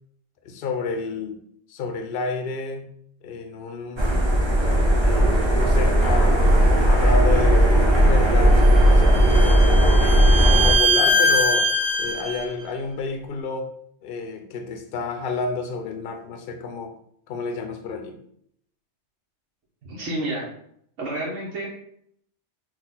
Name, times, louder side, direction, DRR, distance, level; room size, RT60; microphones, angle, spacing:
voice 1, 0.4-1.4 1.7-2.9 3.2-4.2 5.0-8.6 8.9-9.9 10.2-13.8 14.0-16.9 17.3-18.2, left 4 dB, 60° left, 5 dB, 0.7 m, -30 dB
sound 1, 4.0-10.7, equal, 30° right, 0.6 m, -17 dB
Bowed string instrument, 8.6-12.4, equal, 60° right, 0.9 m, -22 dB
voice 2, 19.8-20.4 21.0-21.7, right 1 dB, 85° right, -5 dB, 1.3 m, -29 dB
4.1 x 2.4 x 3.9 m, 0.68 s
omnidirectional pair, 1.2 m